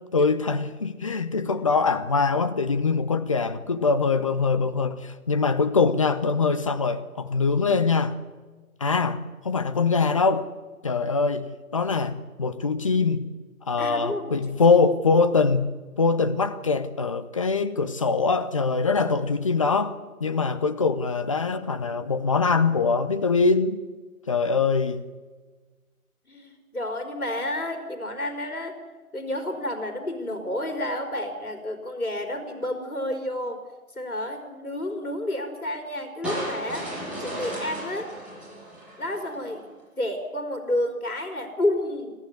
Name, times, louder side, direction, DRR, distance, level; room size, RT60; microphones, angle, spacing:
voice 1, 0.1-8.1 8.8-10.5 10.8-11.5 11.7-13.3 13.7-15.7 16.0-23.8 24.3-25.0, left 4 dB, 25° left, 12 dB, 0.8 m, -23 dB
voice 2, 13.8-14.4 14.7-14.8 26.3-28.8 29.1-33.6 34.0-36.9 37.2-38.1 39.0-39.6 40.0-42.1, left 1 dB, 70° left, 4 dB, 4.2 m, -30 dB
sound 1, 36.2-39.5, equal, ahead, 7.2 m, -34 dB
25.0 x 14.5 x 9.6 m, 1.3 s
figure-of-eight pair, 150°, 43 cm